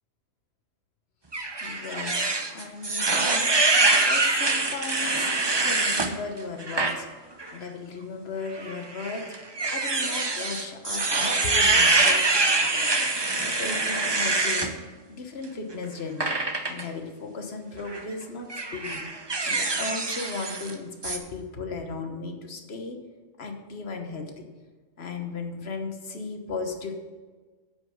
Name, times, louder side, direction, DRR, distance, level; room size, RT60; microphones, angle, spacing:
sound 1, 1.3-6.1 6.6-6.9 7.4-7.5 8.6-14.7 16.2-16.8 17.8-18.0 18.5-20.7 21.0-21.2, right 3 dB, 25° right, 0.6 m, -24 dB
voice 1, 1.6-7.1 7.5-12.9 13.3-14.7 15.1-16.3 16.7-19.0 19.4-23.0 23.4-24.5 25.0-27.0, left 4 dB, 50° left, 4 dB, 1.3 m, -36 dB
8.8 x 5.5 x 7.6 m, 1.4 s
omnidirectional pair, 1.4 m